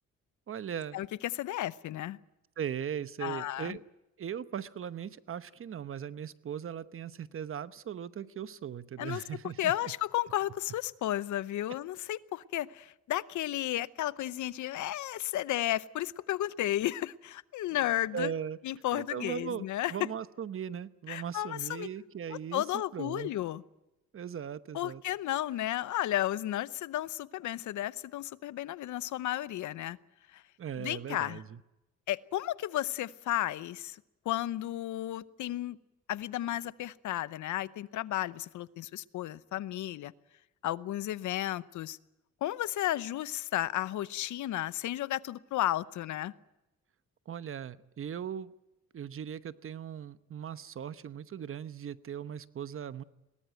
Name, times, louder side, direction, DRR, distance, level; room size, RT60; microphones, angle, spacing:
voice 1, 0.5-1.0 2.6-3.8 4.2-9.7 18.1-18.6 18.9-19.6 19.9-22.6 22.9-23.3 24.1-25.0 30.6-31.6 47.3-48.5 48.9-53.0, right 8 dB, 45° right, 14 dB, 1.0 m, -38 dB
voice 2, 1.3-2.2 3.2-3.8 9.0-9.2 9.6-18.3 18.6-19.9 21.1-21.9 22.5-23.6 24.7-30.0 30.3-30.4 30.8-31.4 32.1-35.8 36.1-40.1 40.6-42.0 42.4-46.3, left 14 dB, 75° left, 17 dB, 0.8 m, -33 dB
22.0 x 18.5 x 9.1 m, 0.98 s
cardioid pair, 90°, 30 cm